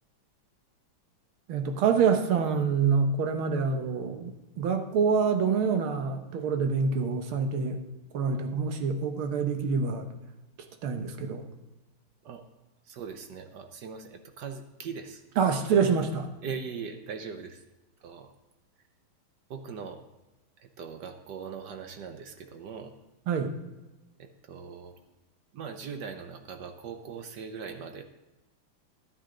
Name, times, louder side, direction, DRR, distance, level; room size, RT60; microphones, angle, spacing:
voice 1, 1.5-7.8 8.1-10.1 10.8-11.5 15.4-16.3 23.3-23.5, right 5 dB, 80° right, 5 dB, 1.9 m, -26 dB
voice 2, 12.9-15.2 16.4-17.6 18.0-18.3 19.5-20.0 20.8-22.9 24.2-24.9 25.5-28.0, right 6 dB, 65° right, 7 dB, 1.2 m, -40 dB
11.5 x 9.7 x 3.8 m, 1.1 s
omnidirectional pair, 2.3 m